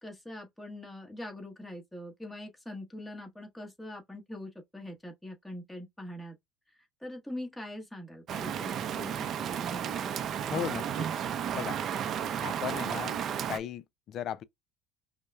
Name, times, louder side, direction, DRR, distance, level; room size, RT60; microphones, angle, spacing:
voice 1, 0.0-6.4 6.7-10.1, left 1 dB, 5° left, 1.3 m, -43 dB
Rain, 8.3-13.6, right 8 dB, 45° right, 0.5 m, -33 dB
voice 2, 10.5-11.1 11.5-11.8 12.4-13.2 13.5-14.4, left 10 dB, 50° left, 0.4 m, -36 dB
5.2 x 2.1 x 2.3 m
supercardioid pair, 100°, 0 cm